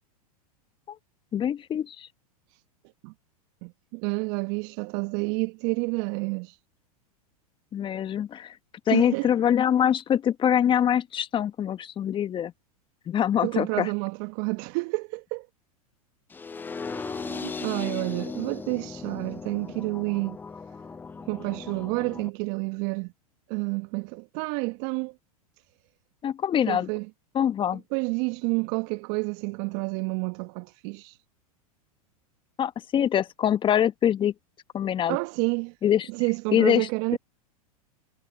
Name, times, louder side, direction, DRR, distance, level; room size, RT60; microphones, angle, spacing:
voice 1, 1.3-2.1 7.7-8.6 8.9-12.5 13.1-13.9 26.2-26.9 27.3-27.8 32.6-34.3 34.7-35.2 35.8-36.1 36.5-37.2, left 9 dB, 25° left, 1.4 m, -24 dB
voice 2, 3.6-6.6 8.9-9.3 13.4-15.5 16.9-20.4 21.3-23.1 23.5-25.1 26.7-27.1 27.9-31.2 35.1-35.7 36.1-37.2, right 31 dB, 50° right, 1.1 m, -29 dB
sound 1, 16.3-22.3, left 4 dB, 10° left, 0.5 m, -37 dB
hypercardioid pair, 100°, 19 cm